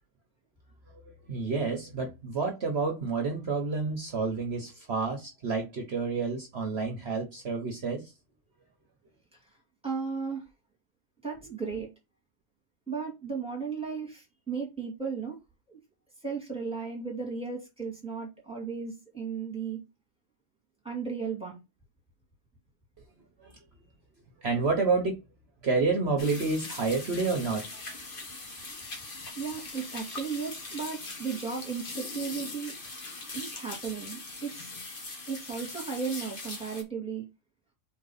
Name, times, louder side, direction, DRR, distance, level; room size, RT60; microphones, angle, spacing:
voice 1, 1.3-8.1 23.4-23.5 24.4-25.2 25.6-27.8, right 4 dB, 50° right, 1.3 m, -29 dB
voice 2, 9.8-10.4 11.2-11.9 12.9-15.4 15.7-15.8 16.2-19.8 20.8-21.6 29.3-32.7 33.3-34.7 35.3-37.2, right 5 dB, 5° right, 2.4 m, -35 dB
sound 1, 26.2-36.8, left 3 dB, 40° left, 1.5 m, -41 dB
4.5 x 3.9 x 5.7 m
omnidirectional pair, 1.4 m